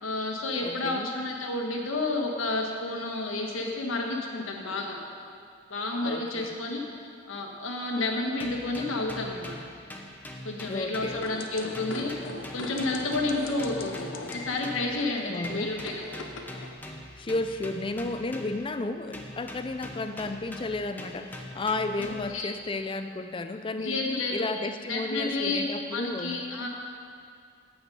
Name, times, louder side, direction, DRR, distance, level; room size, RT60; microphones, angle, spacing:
voice 1, 0.0-5.0 5.7-9.6 10.4-12.3 12.5-14.0 14.3-16.2 22.0-22.5 23.8-24.5 24.9-25.7 25.9-26.7, left 2 dB, 85° left, 1 dB, 1.4 m, -31 dB
voice 2, 0.6-1.1 6.0-6.5 10.7-11.3 15.3-15.7 17.2-26.4, left 2 dB, 25° left, 9 dB, 0.4 m, -33 dB
sound 1, 8.4-11.5 11.7-15.0 15.4-18.8 19.1-22.4, left 1 dB, 10° left, 0.8 m, -43 dB
sound 2, 11.2-16.7, left 3 dB, 70° left, 0.8 m, -40 dB
9.0 x 7.9 x 5.4 m, 2.3 s
head